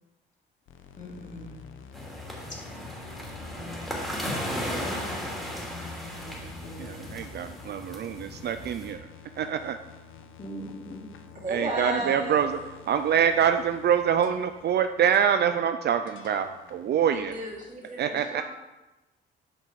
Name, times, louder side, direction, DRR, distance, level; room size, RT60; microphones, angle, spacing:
sound 1, 0.7-17.8, left 6 dB, 85° left, 0.9 m, -50 dB
voice 1, 1.0-1.5 2.5-2.6 3.4-4.2 4.7-7.2 10.4-11.1 12.0-12.1, left 1 dB, 40° left, -3 dB, 2.9 m, -42 dB
sound 2, 1.9-8.9, equal, ahead, 2.9 m, -36 dB
voice 2, 6.8-9.0 9.4-9.8 11.5-12.5 12.9-17.3 18.0-18.4, right 8 dB, 55° right, 9 dB, 0.5 m, -25 dB
voice 3, 11.4-12.5 17.1-18.4, right 1 dB, 40° right, -3 dB, 3.0 m, -33 dB
8.6 x 5.6 x 4.9 m, 1.1 s
cardioid pair, 90°, 20 cm